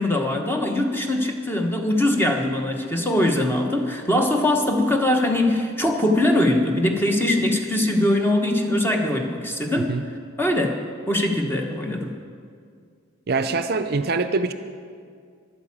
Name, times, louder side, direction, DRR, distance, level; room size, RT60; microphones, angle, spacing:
voice 1, 0.0-9.9 10.4-12.1, left 1 dB, 10° left, 3 dB, 1.1 m, -22 dB
voice 2, 13.3-14.5, right 3 dB, 50° right, 10 dB, 0.5 m, -24 dB
11.5 x 9.0 x 8.5 m, 2.2 s
head